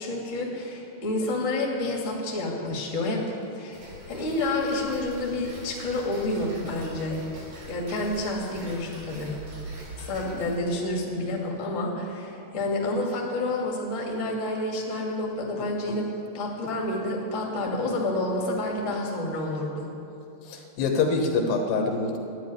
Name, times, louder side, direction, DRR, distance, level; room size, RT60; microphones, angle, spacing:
voice 1, 0.0-3.2 3.5-7.2 7.7-9.3 10.0-16.1 16.3-19.9, left 2 dB, 25° left, -2 dB, 1.8 m, -29 dB
Tick-tock, 3.7-10.5, right 1 dB, 55° right, 4.9 m, -43 dB
voice 2, 20.5-22.2, left 4 dB, 75° left, 3 dB, 3.4 m, -25 dB
12.5 x 10.0 x 9.8 m, 3.0 s
omnidirectional pair, 4.9 m